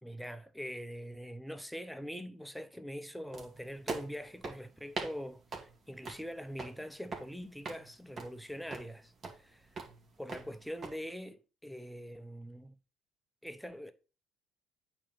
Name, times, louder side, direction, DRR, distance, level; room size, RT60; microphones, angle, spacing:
voice 1, 0.0-5.4 5.9-9.1 9.4-9.7 10.2-12.7 13.4-13.9, equal, ahead, 0.8 m, -43 dB
sound 1, 3.3-10.9, right 4 dB, 40° right, 2.1 m, -45 dB
8.6 x 3.0 x 5.7 m
hypercardioid pair, 60°, 0 cm